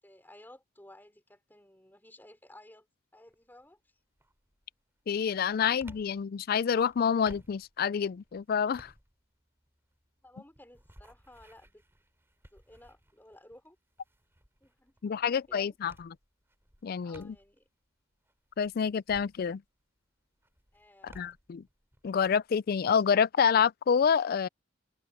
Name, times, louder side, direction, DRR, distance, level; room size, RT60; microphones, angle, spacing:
voice 1, 0.0-2.9 3.1-3.9 5.4-5.6 5.8-6.0 10.2-11.8 12.5-13.8 14.6-15.7 17.0-17.7 20.7-21.3, left 1 dB, 10° left, 3.1 m, -56 dB
sound 1, 3.3-3.7 4.2-17.7 18.1-20.0 20.4-23.0, right 1 dB, 10° right, 3.0 m, -58 dB
voice 2, 5.1-8.9 15.0-15.9 16.8-17.4 18.6-19.6 21.0-21.6 22.0-24.5, left 7 dB, 45° left, 0.3 m, -27 dB
open air
head